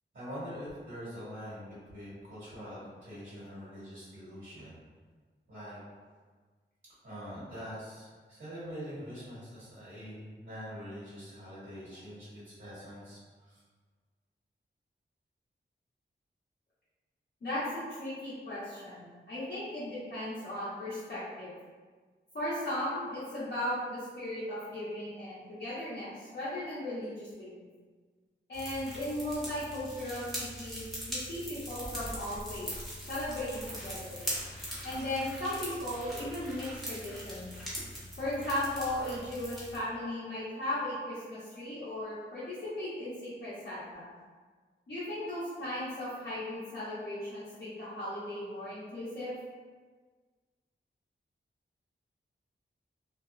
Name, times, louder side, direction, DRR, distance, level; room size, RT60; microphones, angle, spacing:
voice 1, 0.1-4.8 5.5-5.8 7.0-13.6, equal, 60° right, -12 dB, 1.5 m, -44 dB
voice 2, 17.4-21.5 22.3-27.7 28.5-32.7 33.1-34.2 34.8-37.5 38.2-44.1 44.9-49.4, left 1 dB, 55° left, -11 dB, 0.8 m, -37 dB
sound 1, 28.5-39.8, equal, ahead, 0.9 m, -41 dB
2.6 x 2.1 x 2.3 m, 1.5 s
wide cardioid pair, 60°, 20 cm